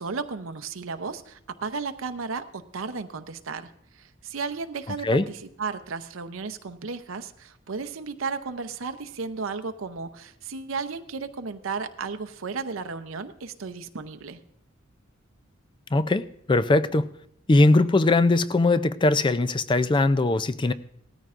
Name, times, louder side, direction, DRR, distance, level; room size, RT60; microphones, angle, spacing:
voice 1, 0.0-14.4, right 4 dB, 90° right, 9 dB, 0.7 m, -34 dB
voice 2, 15.9-17.1 17.5-20.7, left 2 dB, 25° left, 13 dB, 0.4 m, -20 dB
18.0 x 13.5 x 2.5 m, 0.69 s
head